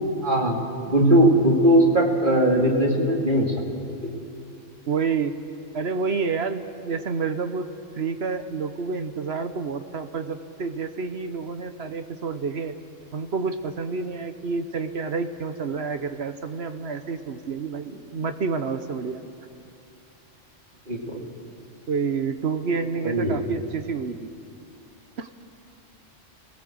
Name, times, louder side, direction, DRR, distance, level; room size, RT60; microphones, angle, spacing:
voice 1, 0.2-0.6 0.9-3.5 4.0-4.1 20.9-21.2 23.0-23.4, right 1 dB, 40° right, 0 dB, 2.7 m, -19 dB
voice 2, 4.9-5.4 5.7-7.7 8.0-12.7 13.1-19.2 21.9-24.3 25.2-25.3, right 5 dB, 55° right, 9 dB, 1.2 m, -29 dB
27.0 x 18.0 x 7.9 m, 2.6 s
omnidirectional pair, 1.3 m